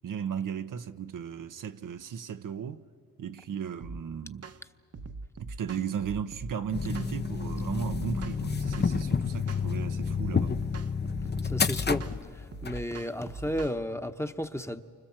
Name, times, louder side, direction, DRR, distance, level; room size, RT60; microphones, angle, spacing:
voice 1, 0.0-2.8 3.2-4.5 5.4-10.5, right 7 dB, 70° right, 0.9 m, -36 dB
sound 1, 3.8-4.0 4.4-4.6 4.9-6.5 6.9-7.1 7.5-9.1 9.5-9.7 10.0-11.6 12.0-12.2 12.5-13.8, right 3 dB, 45° right, 1.1 m, -42 dB
sound 2, 6.7-12.8, left 5 dB, 30° left, 0.8 m, -30 dB
voice 2, 11.4-14.8, equal, 10° left, 1.1 m, -33 dB
29.0 x 25.5 x 7.4 m
cardioid pair, 50°, 33 cm